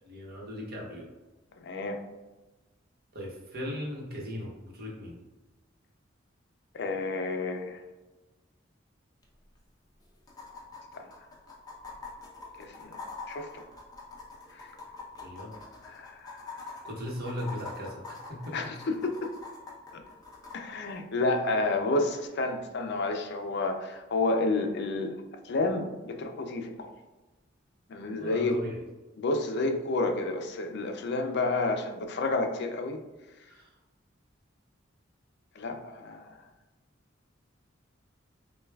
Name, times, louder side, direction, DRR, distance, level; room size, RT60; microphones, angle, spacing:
voice 1, 0.0-1.1 3.1-5.2 15.2-15.5 16.8-18.7 28.2-28.8 33.5-33.7, left 1 dB, 55° right, -2 dB, 1.0 m, -38 dB
voice 2, 1.6-2.0 6.7-7.8 11.0-11.1 12.6-13.0 13.3-13.6 14.5-14.7 15.8-16.4 18.5-19.3 19.9-20.0 20.5-25.1 25.4-26.9 27.9-28.6 29.2-33.0 35.6-36.4, left 2 dB, 60° left, 5 dB, 0.5 m, -30 dB
sound 1, 9.2-9.3 9.5-9.6 10.3-20.6 22.2-22.3, left 4 dB, 20° left, 0.7 m, -44 dB
6.5 x 2.3 x 2.3 m, 1.1 s
head